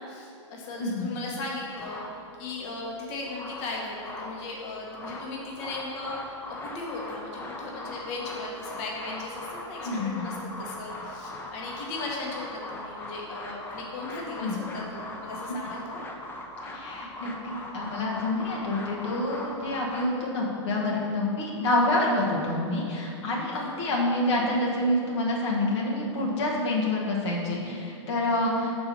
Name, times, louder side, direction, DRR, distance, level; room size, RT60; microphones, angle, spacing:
voice 1, 0.0-16.0 23.5-23.8, left 3 dB, 40° left, -3 dB, 1.3 m, -37 dB
sound 1, 1.7-2.6 3.0-4.4 4.8-20.1, left 2 dB, 15° left, 0.6 m, -40 dB
voice 2, 9.8-10.3 14.4-14.6 16.6-28.9, left 1 dB, 65° left, -3 dB, 1.2 m, -27 dB
5.3 x 4.4 x 5.9 m, 2.7 s
hypercardioid pair, 130°, 16 cm